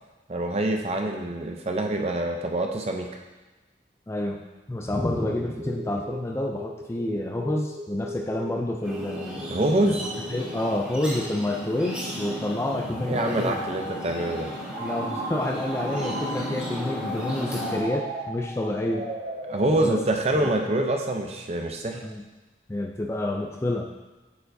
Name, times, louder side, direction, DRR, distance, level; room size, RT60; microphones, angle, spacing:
voice 1, 0.3-3.1 9.5-10.0 13.1-14.5 19.5-22.0, right 1 dB, 35° right, 3 dB, 0.5 m, -25 dB
voice 2, 4.1-4.4 4.7-9.5 9.9-10.0 10.3-13.6 14.8-19.1 19.8-20.0 20.3-20.5 22.0-22.2 22.7-23.9, left 1 dB, 15° left, 2 dB, 0.3 m, -28 dB
sound 1, 4.9-7.0 7.3-8.5 8.9-10.6 11.1-12.1, left 1 dB, 65° right, 1.8 m, -39 dB
sound 2, 8.8-17.8, equal, 5° right, 1.8 m, -34 dB
Telephone, 14.7-16.7 17.6-20.6, right 2 dB, 80° right, 1.6 m, -36 dB
8.4 x 4.5 x 2.6 m, 1.2 s
head